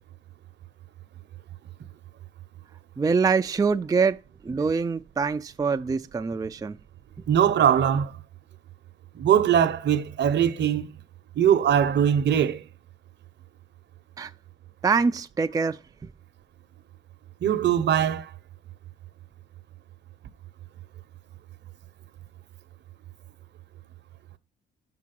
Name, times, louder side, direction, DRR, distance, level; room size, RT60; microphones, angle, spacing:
voice 1, 3.0-6.8 14.2-14.3 14.8-16.1, right 5 dB, 20° right, 0.4 m, -25 dB
voice 2, 7.3-8.1 9.1-10.9 11.4-12.6 17.4-18.3, right 9 dB, 60° right, 0.9 m, -21 dB
6.2 x 5.9 x 5.9 m
cardioid pair, 90°, 20 cm